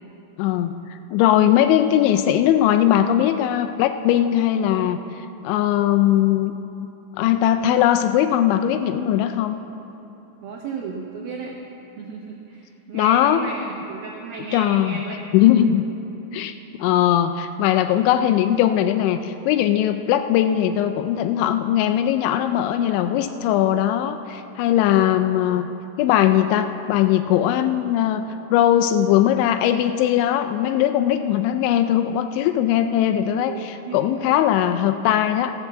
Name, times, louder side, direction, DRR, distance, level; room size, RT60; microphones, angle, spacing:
voice 1, 0.4-0.7 1.1-5.0 5.4-6.5 7.2-9.6 12.9-13.4 14.5-15.0 15.3-15.9 16.3-16.5 16.8-25.7 26.0-28.2 28.5-35.5, left 11 dB, 85° left, 8 dB, 2.8 m, -19 dB
voice 2, 10.4-11.6 12.0-15.2 15.4-15.5 29.1-29.2 33.5-34.0, right 5 dB, 80° right, -1 dB, 2.1 m, -34 dB
15.0 x 7.9 x 7.4 m, 2.9 s
omnidirectional pair, 5.5 m